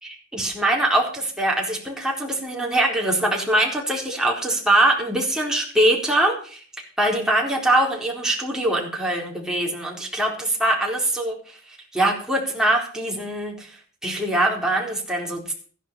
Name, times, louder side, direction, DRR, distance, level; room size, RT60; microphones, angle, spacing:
voice 1, 0.0-6.6 7.0-13.7 14.0-15.5, right 1 dB, 5° right, -2 dB, 4.2 m, -23 dB
14.5 x 11.0 x 5.8 m, 0.43 s
head